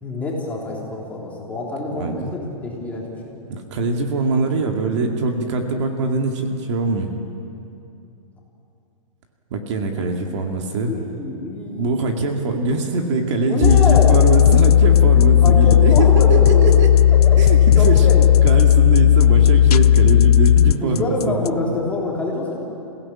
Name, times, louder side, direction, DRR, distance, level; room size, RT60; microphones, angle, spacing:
voice 1, 0.0-3.4 9.9-10.5 10.9-11.9 13.5-14.2 15.4-16.8 17.1-18.3 20.8-22.6, left 2 dB, 5° left, -4 dB, 3.5 m, -26 dB
voice 2, 1.9-2.3 3.5-7.2 9.5-11.0 11.8-16.9 17.4-18.1 18.4-21.5, right 3 dB, 50° right, 3 dB, 2.3 m, -23 dB
sound 1, 13.6-21.5, left 10 dB, 75° left, 0.5 m, -13 dB
28.0 x 16.5 x 8.7 m, 2.7 s
hypercardioid pair, 165°, 20 cm